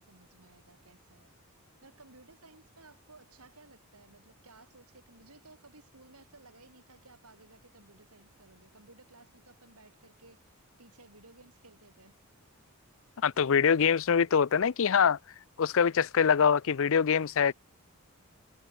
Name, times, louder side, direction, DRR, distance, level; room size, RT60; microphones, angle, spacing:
voice 1, 0.0-1.4 1.8-12.4, right 3 dB, 80° right, 7.6 m, -57 dB
voice 2, 13.2-15.2 15.6-17.5, left 7 dB, 60° left, 0.5 m, -24 dB
head